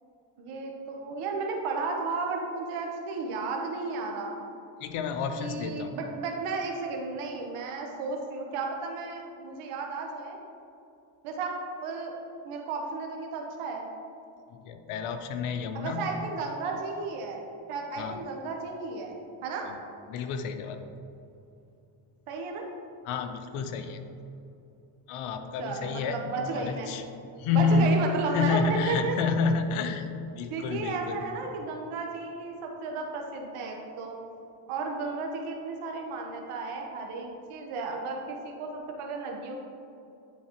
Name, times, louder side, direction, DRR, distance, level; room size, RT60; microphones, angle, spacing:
voice 1, 0.4-4.5 5.4-10.4 11.2-11.5 11.8-12.1 12.4-13.9 15.7-19.7 22.3-22.6 25.6-26.9 27.5-29.2 30.5-34.2 34.7-39.5, right 3 dB, 85° right, 1 dB, 1.0 m, -33 dB
voice 2, 4.8-5.9 14.5-16.2 18.0-18.2 19.6-19.8 20.1-20.8 23.1-24.0 25.1-26.2 26.5-27.0 27.4-27.9 28.3-30.1 30.4-31.2, left 4 dB, 85° left, 7 dB, 0.7 m, -29 dB
10.5 x 4.1 x 2.9 m, 2.7 s
cardioid pair, 75°, 49 cm